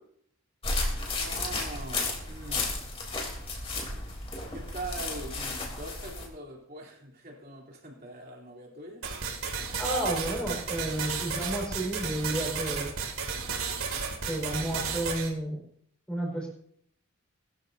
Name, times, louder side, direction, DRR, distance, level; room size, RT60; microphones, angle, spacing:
sound 1, 0.6-6.3, left 2 dB, 25° left, 3.2 m, -33 dB
voice 1, 1.2-2.7 4.5-9.1, right 2 dB, 45° right, -1 dB, 3.4 m, -42 dB
sound 2, 9.0-15.3, right 5 dB, 80° right, 2.7 m, -33 dB
voice 2, 9.8-12.9 14.3-15.6 16.1-16.5, right 1 dB, 5° left, -3 dB, 4.7 m, -31 dB
21.5 x 14.0 x 2.8 m, 0.65 s
head